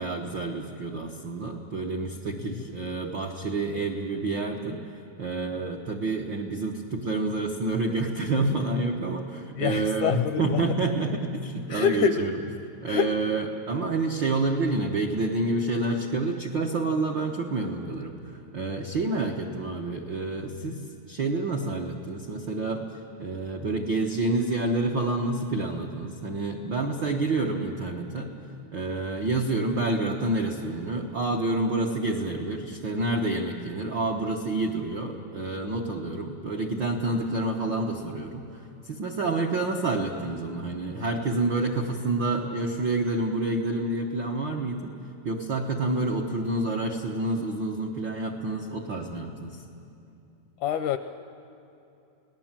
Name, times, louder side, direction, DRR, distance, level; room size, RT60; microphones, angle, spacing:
voice 1, 0.0-4.8 5.2-12.4 12.8-18.2 18.5-20.8 21.1-22.8 23.2-28.3 28.7-44.9 45.2-49.6, right 2 dB, 85° right, 1 dB, 1.0 m, -28 dB
voice 2, 9.6-10.6 11.7-12.2 12.9-13.1 20.6-20.9 50.6-51.0, left 8 dB, 80° left, 9 dB, 1.8 m, -25 dB
29.5 x 18.5 x 7.5 m, 2.8 s
omnidirectional pair, 4.1 m